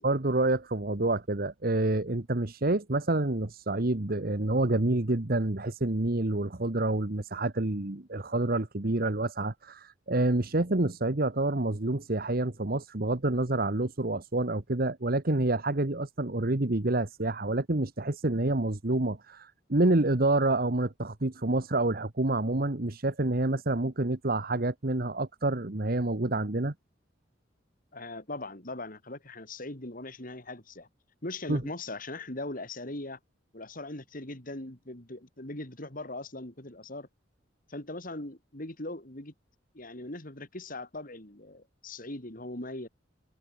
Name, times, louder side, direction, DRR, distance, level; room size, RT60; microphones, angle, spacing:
voice 1, 0.0-26.7 31.5-31.6, right 2 dB, 50° right, 1.4 m, -28 dB
voice 2, 27.9-30.9 31.2-33.2 33.5-37.1 37.7-39.3 39.7-42.9, left 2 dB, 45° left, 3.7 m, -40 dB
head